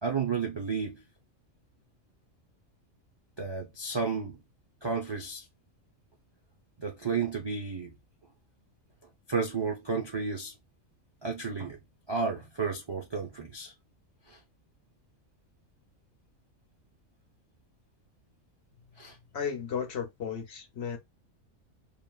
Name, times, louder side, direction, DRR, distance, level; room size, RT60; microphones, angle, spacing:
voice 1, 0.0-1.0 3.4-4.4 4.8-5.4 6.8-7.9 9.3-10.5 11.2-11.8 12.1-13.7 14.3-14.4 19.0-19.2, right 5 dB, 45° right, 0.3 m, -32 dB
voice 2, 19.3-21.0, left 7 dB, 60° left, 0.9 m, -34 dB
3.2 x 2.4 x 2.3 m
omnidirectional pair, 1.4 m